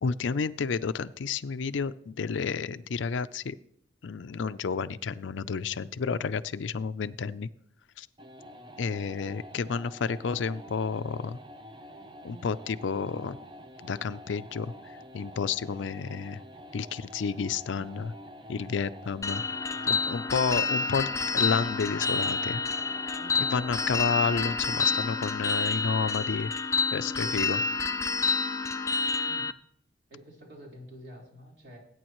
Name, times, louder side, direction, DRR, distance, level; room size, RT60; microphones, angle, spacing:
voice 1, 0.0-3.6 4.0-7.5 8.0-8.1 8.8-11.4 12.2-13.4 13.8-16.4 16.7-18.1 18.5-19.4 19.9-22.6 23.1-27.6, left 5 dB, 80° left, 15 dB, 0.5 m, -31 dB
sound 1, 8.2-25.2, equal, 25° right, 0.6 m, -47 dB
sound 2, 19.2-29.5, left 4 dB, 15° left, 0.3 m, -29 dB
voice 2, 30.1-31.8, equal, 60° right, -2 dB, 4.1 m, -48 dB
20.5 x 9.3 x 3.1 m, 0.70 s
head